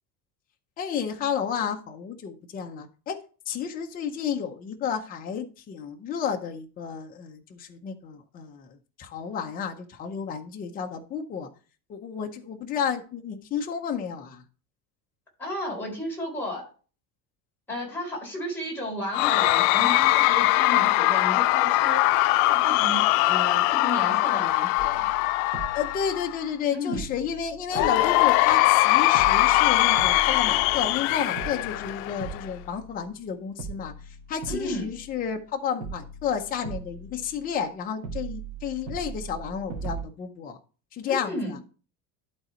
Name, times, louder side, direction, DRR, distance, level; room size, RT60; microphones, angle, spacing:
voice 1, 0.8-3.2 3.5-11.5 11.9-14.4 25.7-33.9 34.3-40.6 40.9-41.6, left 7 dB, 20° left, 3 dB, 0.7 m, -31 dB
voice 2, 15.4-16.7 17.7-25.0 26.7-27.0 34.5-34.9 41.1-41.6, left 1 dB, 5° left, -4 dB, 3.9 m, -33 dB
Cheering / Crowd, 19.1-26.4 27.7-32.5, left 18 dB, 90° left, 0.5 m, -22 dB
sound 1, 24.8-26.6 26.9-28.8 29.1-31.0 31.4-33.3 33.6-35.5 35.8-37.7 38.0-40.0, right 5 dB, 65° right, 2.0 m, -40 dB
12.0 x 3.9 x 4.3 m, 0.36 s
cardioid pair, 175°, 41 cm